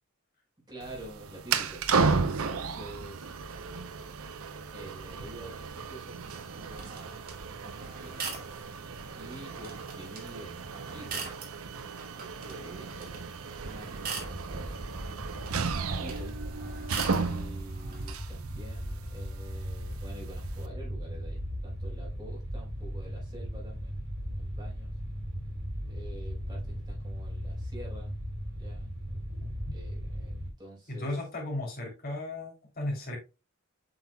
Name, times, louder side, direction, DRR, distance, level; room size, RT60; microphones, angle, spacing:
voice 1, 0.7-3.3 4.7-8.2 9.1-11.2 12.1-14.9 15.7-16.5 16.9-24.0 24.4-24.9 25.8-28.2 28.5-29.0 29.7-31.1, right 1 dB, 20° right, 4.0 m, -48 dB
sound 1, 0.8-20.7, right 4 dB, 90° right, 0.7 m, -35 dB
sound 2, 6.2-18.1, right 5 dB, 45° right, 2.1 m, -43 dB
sound 3, 14.2-30.5, equal, 70° right, 4.0 m, -38 dB
voice 2, 30.9-33.2, left 1 dB, 45° left, 3.0 m, -35 dB
7.7 x 5.8 x 2.2 m
head